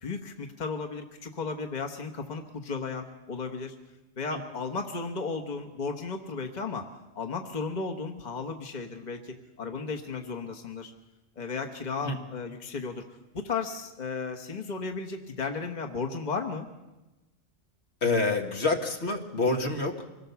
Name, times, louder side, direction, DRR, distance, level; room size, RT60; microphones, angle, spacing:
voice 1, 0.0-3.8 4.2-6.9 7.1-10.9 11.4-13.0 13.3-16.7, left 4 dB, 40° left, 5 dB, 1.4 m, -34 dB
voice 2, 18.0-20.1, left 3 dB, 70° left, 3 dB, 2.2 m, -27 dB
25.0 x 18.0 x 7.0 m, 1.0 s
omnidirectional pair, 1.2 m